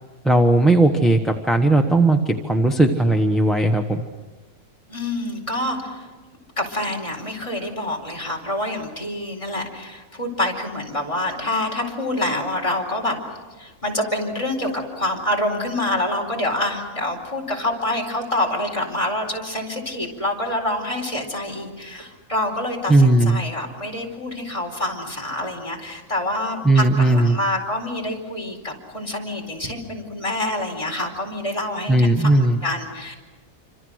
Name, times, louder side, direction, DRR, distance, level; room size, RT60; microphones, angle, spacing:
voice 1, 0.2-2.2 2.4-4.0 22.9-23.4 26.6-27.4 31.9-32.6, right 2 dB, ahead, 4 dB, 1.0 m, -17 dB
voice 2, 4.9-6.1 6.6-13.2 13.6-33.2, left 1 dB, 20° left, 0 dB, 4.5 m, -26 dB
27.5 x 26.0 x 6.4 m, 1.3 s
omnidirectional pair, 1.4 m